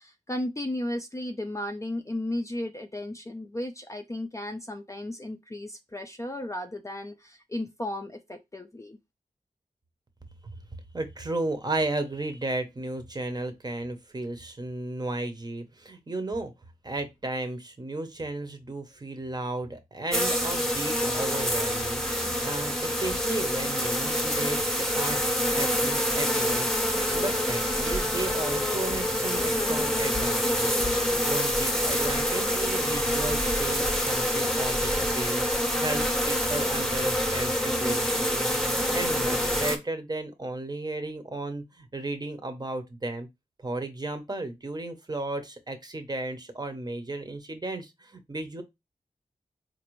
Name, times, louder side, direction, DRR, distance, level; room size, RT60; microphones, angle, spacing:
voice 1, 0.0-9.0, left 1 dB, 20° left, 0.4 m, -34 dB
voice 2, 10.9-16.5 16.8-26.8 27.1-43.3 43.6-48.6, right 2 dB, 25° right, 0.7 m, -34 dB
sound 1, 20.1-39.8, equal, ahead, 0.8 m, -26 dB
4.0 x 2.6 x 3.0 m
wide cardioid pair, 80°, 15 cm